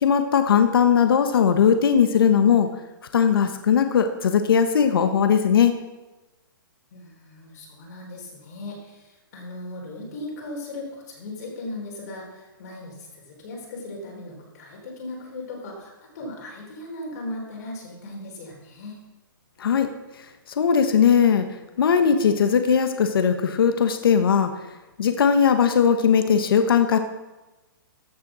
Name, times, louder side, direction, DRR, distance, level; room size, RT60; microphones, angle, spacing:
voice 1, 0.0-2.7 3.1-5.8 19.6-19.9 20.6-21.5 21.8-24.5 25.0-27.0, left 7 dB, 75° left, 7 dB, 1.3 m, -19 dB
voice 2, 6.9-19.0, left 2 dB, 45° left, -1 dB, 3.9 m, -37 dB
14.5 x 6.8 x 6.2 m, 1.1 s
hypercardioid pair, 165°, 12 cm